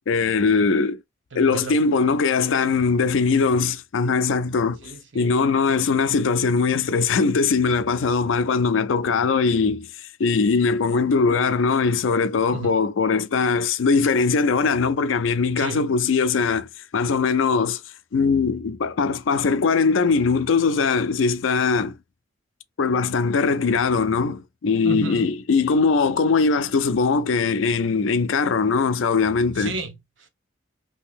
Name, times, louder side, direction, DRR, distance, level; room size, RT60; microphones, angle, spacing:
voice 1, 0.1-1.0 1.3-16.7 16.9-17.8 18.1-21.9 22.8-29.7, left 4 dB, 90° left, 0.4 m, -21 dB
voice 2, 1.3-1.8 4.8-5.4 12.5-12.8 15.6-15.9 24.8-25.3 29.6-30.3, right 4 dB, 80° right, 0.8 m, -33 dB
2.8 x 2.7 x 3.4 m
head